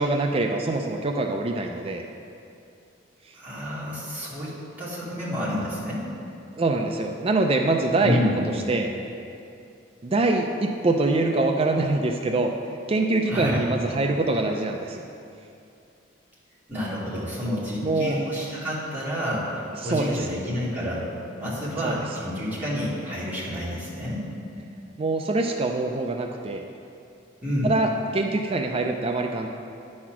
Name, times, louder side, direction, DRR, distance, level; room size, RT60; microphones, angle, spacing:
voice 1, 0.0-2.0 6.6-8.2 8.7-8.9 10.0-12.5 12.9-15.0 17.8-18.2 19.8-20.2 21.8-22.0 25.0-26.6 27.6-29.5, right 2 dB, 30° right, 3 dB, 0.4 m, -24 dB
voice 2, 3.3-6.0 8.0-8.4 13.3-13.6 16.7-21.1 21.4-24.2 27.4-27.7, left 1 dB, 10° right, -9 dB, 2.2 m, -29 dB
10.0 x 4.3 x 5.9 m, 2.6 s
head